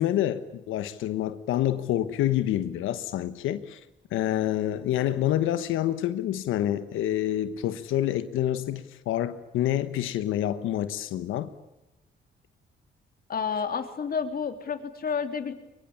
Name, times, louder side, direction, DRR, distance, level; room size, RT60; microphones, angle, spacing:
voice 1, 0.0-3.8 4.1-11.5, left 12 dB, 85° left, 1.3 m, -27 dB
voice 2, 13.3-15.5, left 6 dB, 50° left, 3.2 m, -30 dB
23.5 x 23.0 x 8.7 m
cardioid pair, 90°, 20 cm